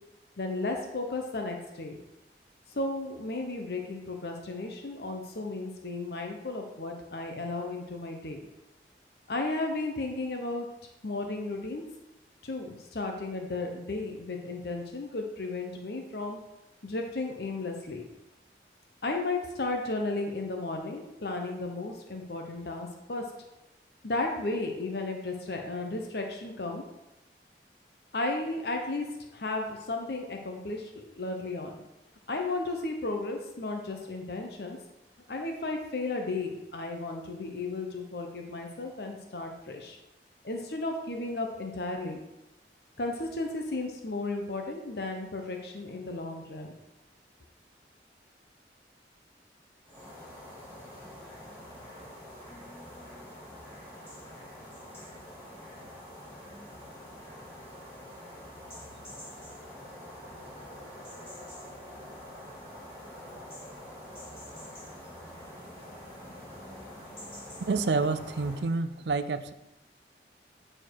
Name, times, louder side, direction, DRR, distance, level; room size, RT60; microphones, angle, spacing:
voice 1, 0.4-2.0 2.7-8.4 9.3-10.7 11.0-11.8 12.4-16.4 16.8-18.1 19.0-23.3 24.0-26.8 28.1-29.1 29.3-31.8 32.3-34.8 35.3-40.0 40.4-42.2 43.0-46.7, left 2 dB, 65° left, 3 dB, 0.8 m, -34 dB
sound 1, 49.8-68.7, left 1 dB, 15° left, 2.8 m, -46 dB
voice 2, 67.7-69.5, right 3 dB, 75° right, 10 dB, 0.5 m, -28 dB
8.8 x 4.4 x 4.7 m, 0.94 s
head